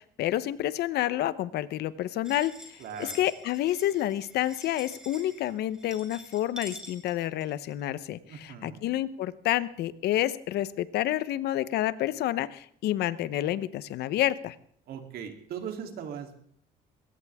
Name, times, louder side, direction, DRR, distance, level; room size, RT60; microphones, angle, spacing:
voice 1, 0.0-14.5, left 13 dB, 75° left, 16 dB, 0.9 m, -29 dB
sound 1, 2.2-7.8, equal, 5° right, 5.4 m, -47 dB
voice 2, 2.8-3.2 8.3-8.8 14.9-16.3, right 8 dB, 65° right, 4 dB, 3.1 m, -39 dB
21.5 x 17.0 x 3.6 m, 0.64 s
cardioid pair, 110°, 17 cm